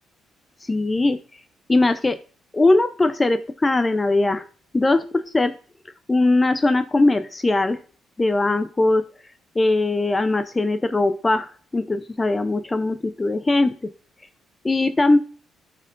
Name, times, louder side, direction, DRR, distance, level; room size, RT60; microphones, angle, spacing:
voice 1, 0.6-1.2 1.7-2.2 2.5-4.4 4.7-5.5 6.1-7.8 8.2-9.0 9.6-13.9 14.6-15.2, left 2 dB, 20° left, 11 dB, 0.4 m, -20 dB
10.0 x 4.4 x 2.5 m, 0.42 s
cardioid pair, 90°, 0 cm